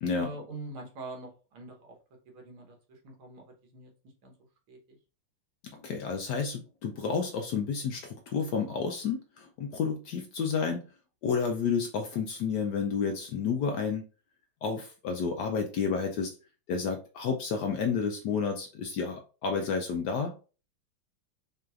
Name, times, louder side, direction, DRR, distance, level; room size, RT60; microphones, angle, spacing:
voice 1, 0.1-2.0 2.3-3.9 4.2-4.3 4.7-5.0, right 2 dB, 80° right, 2.0 m, -44 dB
voice 2, 5.7-10.8 11.2-14.0 14.6-16.4 16.7-20.3, left 5 dB, 75° left, 1.0 m, -30 dB
5.3 x 3.3 x 2.4 m
omnidirectional pair, 2.3 m